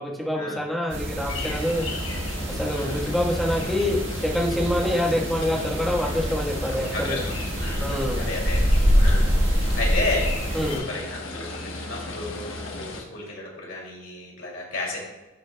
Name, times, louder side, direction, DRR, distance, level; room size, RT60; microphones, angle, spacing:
voice 1, 0.0-1.9 2.5-7.2 7.8-8.2 10.5-10.8, left 1 dB, ahead, -2 dB, 1.2 m, -26 dB
sound 1, 0.9-10.8, equal, 65° right, 1.3 m, -25 dB
sound 2, 1.3-13.0, left 2 dB, 85° left, 1.1 m, -36 dB
voice 2, 1.7-2.1 2.7-3.0 4.9-5.0 6.9-8.6 9.0-10.3 10.7-15.1, left 2 dB, 70° left, -2 dB, 2.5 m, -33 dB
15.0 x 5.0 x 2.2 m, 1.1 s
head